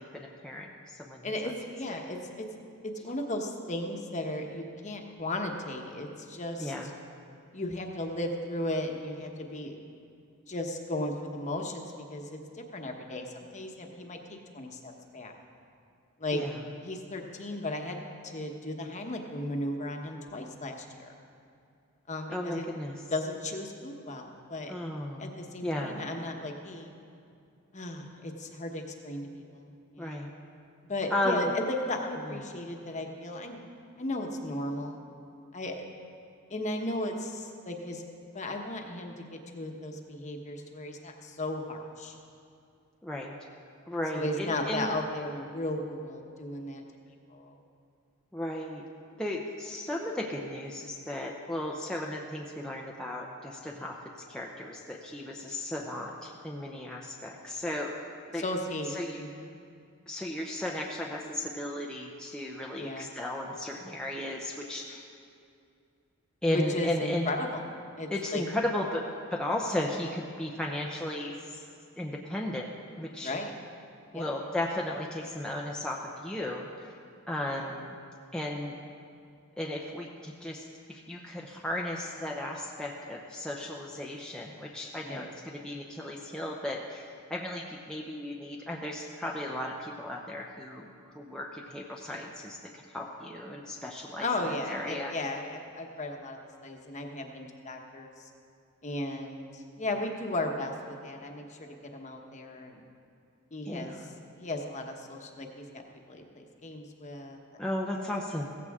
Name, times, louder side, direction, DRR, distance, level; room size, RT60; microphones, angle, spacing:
voice 1, 0.0-1.2 6.6-6.9 16.3-16.5 22.3-23.0 24.7-25.3 25.6-26.0 30.0-30.3 31.1-31.5 43.0-43.3 43.9-44.9 48.3-48.8 49.2-54.0 54.3-58.0 58.3-58.4 58.9-59.2 60.1-65.0 66.4-67.2 68.1-71.6 72.0-72.7 73.0-73.3 74.1-76.7 77.3-77.9 78.3-78.8 79.6-95.1 103.7-104.0 107.6-108.5, left 1 dB, 5° left, -2 dB, 0.7 m, -35 dB
voice 2, 1.2-2.5 2.8-6.7 7.5-9.7 10.5-15.3 16.2-16.4 16.8-21.1 22.1-22.7 23.1-24.7 25.2-26.9 27.7-29.7 29.9-30.3 30.9-33.6 34.0-35.0 35.5-35.8 36.5-38.0 38.3-42.2 44.1-46.8 47.3-47.6 58.3-59.5 62.7-63.1 66.5-67.6 68.0-68.4 73.2-73.5 74.1-74.3 84.9-85.3 94.2-98.3 98.8-102.9 103.5-107.6, left 1 dB, 35° left, 3 dB, 1.1 m, -36 dB
16.0 x 15.0 x 3.6 m, 2.4 s
head